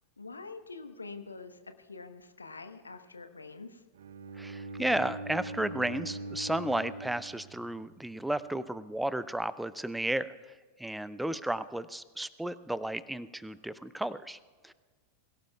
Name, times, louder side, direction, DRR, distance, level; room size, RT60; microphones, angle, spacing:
voice 1, 0.2-3.8, left 4 dB, 80° left, 9 dB, 1.0 m, -45 dB
Bowed string instrument, 3.9-8.1, right 2 dB, 60° right, 0.6 m, -42 dB
voice 2, 4.4-10.3 10.8-14.4 14.6-14.7, right 1 dB, 5° right, 16 dB, 0.5 m, -33 dB
23.0 x 17.0 x 2.3 m, 1.5 s
figure-of-eight pair, 90°, 0 cm